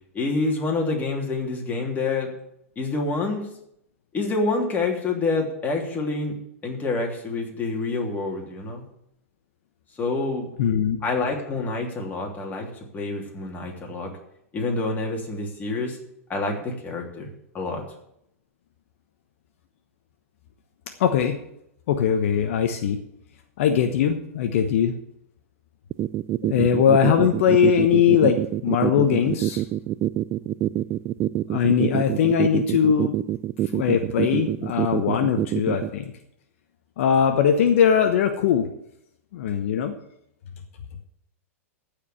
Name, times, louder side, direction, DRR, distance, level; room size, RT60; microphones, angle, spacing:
voice 1, 0.1-2.3 2.8-3.5 4.1-6.3 6.6-8.8 10.0-10.5 11.0-14.1 14.5-16.0 16.3-17.3 17.5-17.8, left 3 dB, 20° left, 0 dB, 3.1 m, -27 dB
voice 2, 10.6-11.0 21.0-21.4 21.9-23.0 23.6-24.9 26.5-29.6 31.5-33.2 33.7-36.0 37.0-38.7 39.3-39.9, left 8 dB, 60° left, 6 dB, 1.1 m, -20 dB
sound 1, 25.9-35.9, right 14 dB, 30° right, 0.3 m, -25 dB
15.0 x 5.0 x 8.4 m, 0.76 s
hypercardioid pair, 105°, 8 cm